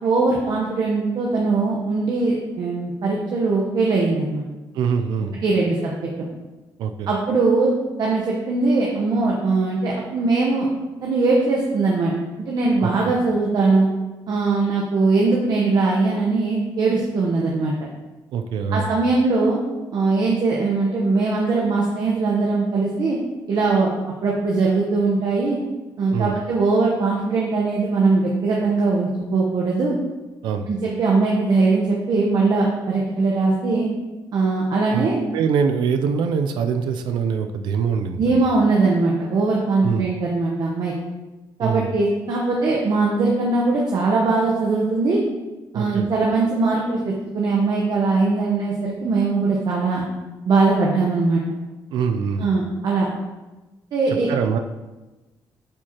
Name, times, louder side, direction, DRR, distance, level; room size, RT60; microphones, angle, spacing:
voice 1, 0.0-4.4 5.4-5.9 7.1-7.7 8.0-10.7 11.0-12.1 12.4-13.9 14.3-17.7 18.7-19.6 19.9-23.2 23.5-23.9 24.2-25.6 26.0-30.0 30.7-33.9 34.3-35.2 38.2-40.9 41.6-45.2 45.7-50.0 50.5-51.4 52.4-53.1 53.9-54.3, right 3 dB, 60° right, -2 dB, 1.0 m, -20 dB
voice 2, 4.7-5.3 6.8-7.1 12.8-13.1 18.3-18.9 26.1-26.3 30.4-30.7 34.9-38.4 39.8-40.0 41.6-41.9 45.7-46.1 51.9-52.5 54.3-54.6, right 6 dB, 80° right, 7 dB, 0.5 m, -23 dB
8.5 x 4.7 x 2.9 m, 1.1 s
cardioid pair, 85°, 8 cm